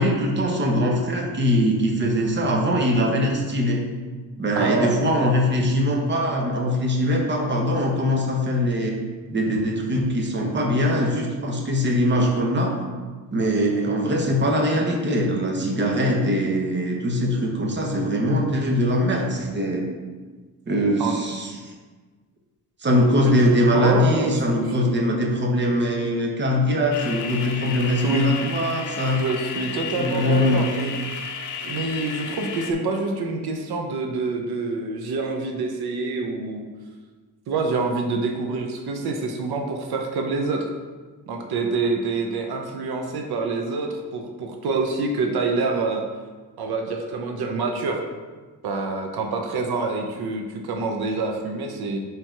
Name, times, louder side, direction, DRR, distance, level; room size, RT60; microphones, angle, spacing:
voice 1, 0.0-3.8 4.4-8.9 9.3-12.8 13.3-19.9 20.7-21.5 22.8-29.2 30.0-30.7, equal, 30° right, 1 dB, 1.0 m, -22 dB
voice 2, 4.6-5.0 21.0-21.1 23.2-23.3 23.6-24.4 28.0-28.3 29.1-30.9 31.7-36.7 37.5-40.7 41.3-46.0 46.6-48.0 48.6-52.0, right 3 dB, 85° right, 3 dB, 0.8 m, -26 dB
sound 1, 23.7-34.8, equal, 60° right, 1.7 m, -44 dB
sound 2, 26.9-32.7, left 6 dB, 55° left, 0.7 m, -33 dB
5.1 x 4.6 x 4.5 m, 1.3 s
cardioid pair, 125°, 37 cm